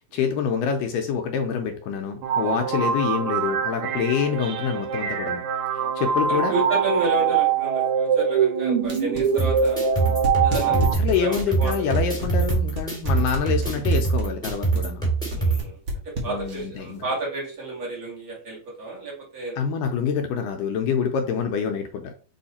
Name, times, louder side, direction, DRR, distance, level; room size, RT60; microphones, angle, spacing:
voice 1, 0.1-5.4 5.7-6.5 10.7-15.0 16.3-17.1 19.6-22.1, left 7 dB, 80° left, 4 dB, 2.2 m, -26 dB
sound 1, 2.2-10.9, right 7 dB, 80° right, 2.5 m, -24 dB
voice 2, 6.3-9.8 10.4-10.7 11.2-12.0 13.1-13.2 15.3-15.8 16.0-19.5, right 2 dB, 35° right, -3 dB, 1.8 m, -31 dB
sound 2, 8.8-16.8, right 1 dB, 50° right, 1.5 m, -31 dB
sound 3, 9.4-15.6, right 4 dB, ahead, 1.6 m, -24 dB
7.1 x 3.2 x 4.2 m, 0.39 s
omnidirectional pair, 4.1 m